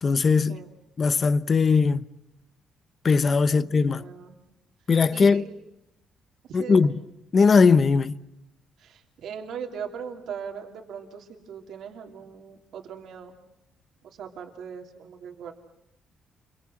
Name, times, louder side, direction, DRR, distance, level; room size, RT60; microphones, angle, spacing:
voice 1, 0.0-0.6 1.0-2.0 3.0-4.0 4.9-5.4 6.5-6.9 7.3-8.2, left 5 dB, 40° left, 1.0 m, -19 dB
voice 2, 3.5-4.4 5.1-5.5 6.4-6.9 8.8-13.3 14.0-15.5, right 7 dB, 70° right, 3.0 m, -39 dB
29.0 x 24.0 x 7.7 m
cardioid pair, 90°, 0 cm